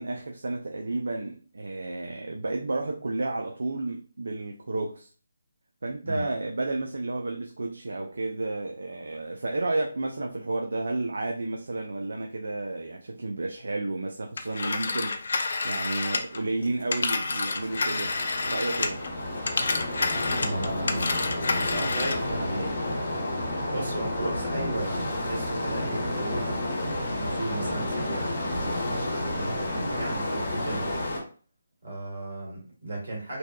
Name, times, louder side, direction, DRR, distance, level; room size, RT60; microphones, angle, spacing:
voice 1, 0.0-5.1 5.8-15.3 15.6-18.1 18.4-19.0, right 2 dB, 75° right, 0.3 m, -31 dB
Telephone, 14.4-19.1 19.4-22.3, left 3 dB, 65° left, 0.4 m, -29 dB
sound 1, 17.2-31.2, left 1 dB, 45° left, 0.8 m, -31 dB
voice 2, 20.4-21.1 21.5-22.9 23.7-26.7 27.1-31.0 31.8-33.4, right 1 dB, 60° right, 1.4 m, -35 dB
2.7 x 2.2 x 2.2 m
figure-of-eight pair, 155°, 0 cm